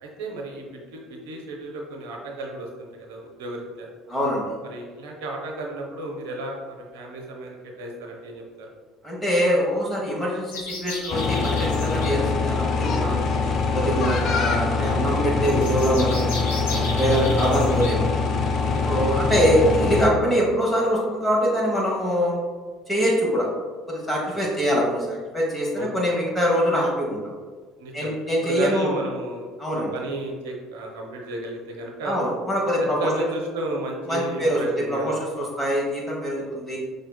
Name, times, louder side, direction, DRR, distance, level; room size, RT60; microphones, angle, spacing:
voice 1, 0.0-3.9 4.6-8.7 16.7-17.0 18.7-18.9 24.3-24.6 25.8-26.2 27.8-29.5 29.7-32.2 32.8-35.2, right 2 dB, 65° right, 0 dB, 0.7 m, -33 dB
voice 2, 4.1-4.5 9.0-13.2 13.7-16.3 16.6-18.1 18.8-22.4 22.9-23.5 23.9-27.3 27.9-28.9 29.6-29.9 32.0-33.1 34.1-36.8, equal, 5° left, -4 dB, 1.0 m, -24 dB
sound 1, 10.5-12.1 15.4-17.9, left 3 dB, 70° left, 0.9 m, -34 dB
sound 2, 11.1-20.1, left 4 dB, 45° left, 0.4 m, -23 dB
5.6 x 3.2 x 2.3 m, 1.5 s
figure-of-eight pair, 60°, 0 cm